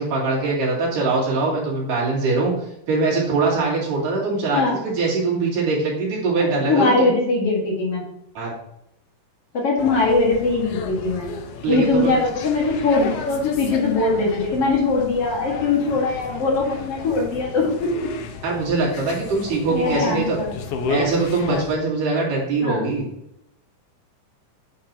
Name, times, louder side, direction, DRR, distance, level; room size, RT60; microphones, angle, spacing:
voice 1, 0.0-7.1 8.4-8.5 11.6-12.1 18.4-20.4 20.9-23.1, right 3 dB, 80° right, -4 dB, 4.3 m, -22 dB
voice 2, 6.7-8.0 9.5-11.3 11.7-17.9 19.7-20.5 22.6-22.9, left 3 dB, 50° left, -2 dB, 2.6 m, -21 dB
sound 1, 9.8-21.8, left 5 dB, 75° left, 1.4 m, -33 dB
8.8 x 8.0 x 2.9 m, 0.79 s
omnidirectional pair, 3.8 m